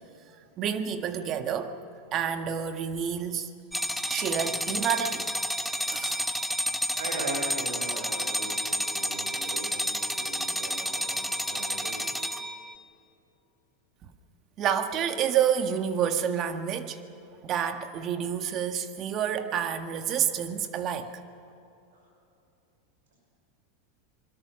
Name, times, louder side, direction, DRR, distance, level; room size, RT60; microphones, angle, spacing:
voice 1, 0.6-1.8 2.1-3.5 4.1-5.3 5.9-6.3 14.6-17.0 17.4-21.2, right 8 dB, 40° right, 1.7 m, -29 dB
sound 1, 3.7-12.8, equal, ahead, 1.0 m, -30 dB
voice 2, 6.9-12.4 21.9-22.0, right 2 dB, 90° right, 5.8 m, -39 dB
26.5 x 21.5 x 6.3 m
hypercardioid pair, 110°, 0 cm